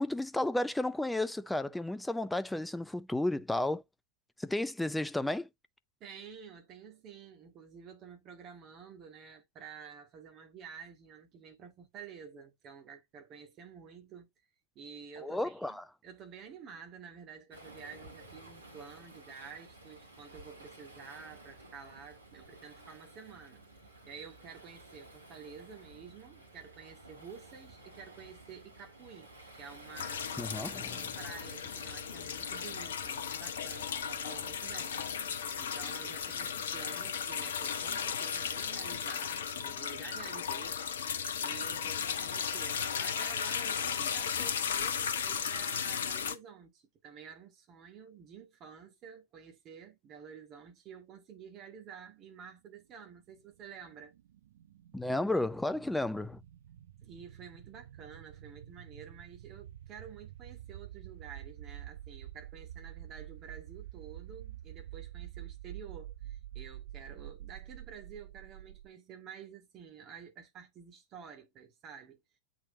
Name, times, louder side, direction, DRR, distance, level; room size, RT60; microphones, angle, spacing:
voice 1, 0.0-3.8 4.4-5.5 15.2-15.8 30.4-31.0 54.9-56.4, left 1 dB, 5° left, 0.4 m, -32 dB
voice 2, 6.0-14.3 14.8-23.6 24.1-35.0 35.6-54.1 57.0-72.2, right 6 dB, 35° right, 1.8 m, -50 dB
Waves surf, 17.5-35.2, right 2 dB, 80° right, 1.8 m, -53 dB
sound 1, 30.0-46.4, left 7 dB, 65° left, 0.7 m, -35 dB
sound 2, 53.0-68.9, right 12 dB, 60° right, 0.6 m, -48 dB
7.6 x 4.0 x 3.9 m
figure-of-eight pair, 90°, 0 cm